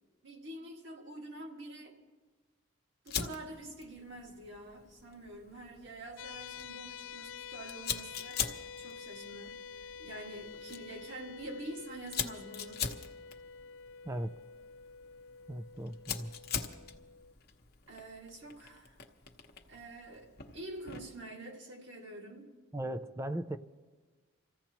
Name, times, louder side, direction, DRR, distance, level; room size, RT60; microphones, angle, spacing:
voice 1, 0.2-2.0 3.0-12.8 17.9-19.0 19.7-22.5, right 1 dB, 60° right, 2.0 m, -47 dB
Fire, 3.1-21.2, left 7 dB, 45° left, 0.9 m, -43 dB
sound 1, 6.2-17.3, left 6 dB, 70° left, 0.3 m, -48 dB
voice 2, 15.5-16.3 22.7-23.6, right 1 dB, 15° right, 0.3 m, -37 dB
27.0 x 15.0 x 3.0 m
head